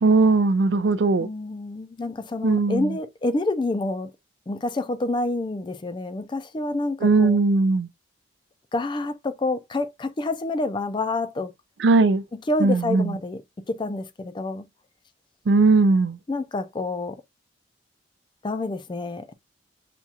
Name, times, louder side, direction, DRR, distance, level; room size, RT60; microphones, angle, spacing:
voice 1, 0.0-1.3 2.4-2.9 7.0-7.9 11.8-12.2 12.6-13.2 15.5-16.2, right 3 dB, 70° right, 0.4 m, -19 dB
voice 2, 1.2-4.1 4.5-7.4 8.7-11.5 12.5-14.7 16.3-17.2 18.4-19.3, left 2 dB, 25° left, 0.4 m, -28 dB
5.9 x 2.3 x 2.7 m
head